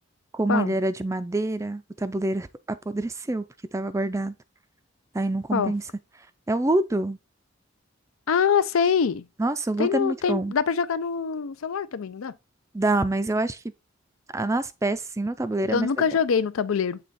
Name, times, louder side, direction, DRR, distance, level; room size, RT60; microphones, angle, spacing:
voice 1, 0.3-3.5 3.7-4.3 5.1-5.8 6.5-7.2 9.4-10.5 12.7-13.6 14.3-15.9, right 2 dB, 15° right, 0.3 m, -26 dB
voice 2, 8.3-9.3 9.8-12.3 15.6-17.0, left 6 dB, 90° left, 0.5 m, -24 dB
7.7 x 3.3 x 4.0 m
head